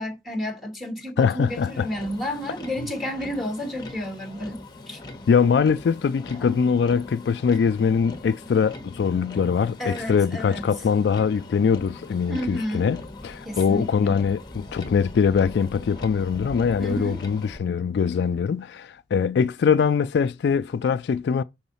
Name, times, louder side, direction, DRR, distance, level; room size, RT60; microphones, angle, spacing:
voice 1, 0.0-4.6 4.9-5.0 6.4-6.6 9.8-10.8 12.3-12.9 13.4-14.2 16.8-17.2, equal, ahead, 2.3 m, -31 dB
voice 2, 1.2-1.9 5.3-21.4, left 6 dB, 70° left, 0.3 m, -22 dB
Motor vehicle (road), 1.5-17.6, left 2 dB, 25° left, 1.2 m, -41 dB
6.2 x 3.9 x 5.6 m
head